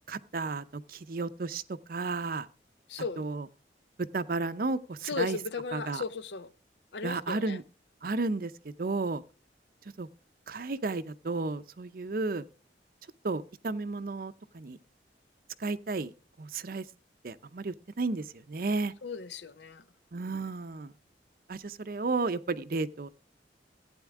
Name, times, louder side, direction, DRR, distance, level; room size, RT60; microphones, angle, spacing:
voice 1, 0.1-1.6 1.9-2.5 3.2-3.5 4.0-5.4 5.7-6.0 7.0-7.6 8.0-9.2 10.0-10.1 10.5-12.5 13.2-14.8 15.6-16.1 16.4-16.8 17.2-18.9 20.1-20.9 21.5-23.1, right 3 dB, 50° right, 0.6 m, -33 dB
voice 2, 2.9-3.3 5.0-6.5 6.9-7.6 19.0-19.8, left 5 dB, 75° left, 0.6 m, -36 dB
15.0 x 9.1 x 3.6 m
head